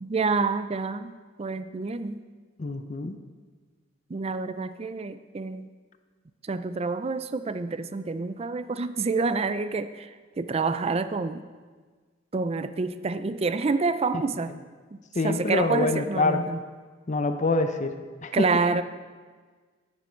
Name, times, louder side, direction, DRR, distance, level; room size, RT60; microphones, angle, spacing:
voice 1, 0.0-2.2 4.1-5.7 6.4-11.4 12.3-14.5 15.2-16.6 18.3-18.8, right 4 dB, 30° right, 12 dB, 0.4 m, -28 dB
voice 2, 2.6-3.2 15.1-16.4 17.1-18.0 18.2-18.5, left 3 dB, 40° left, 8 dB, 0.6 m, -25 dB
10.5 x 9.5 x 4.4 m, 1.5 s
head